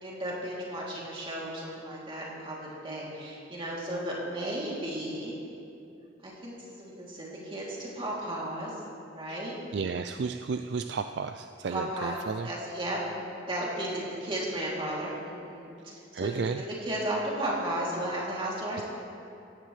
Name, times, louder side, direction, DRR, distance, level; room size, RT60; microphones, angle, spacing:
voice 1, 0.0-5.4 6.2-8.7 9.1-9.5 11.7-12.2 12.4-15.7 16.1-18.8, right 1 dB, 25° right, -5 dB, 2.9 m, -34 dB
voice 2, 9.7-12.5 16.1-16.7, right 5 dB, 60° right, 7 dB, 0.4 m, -33 dB
17.0 x 15.0 x 3.3 m, 2.6 s
head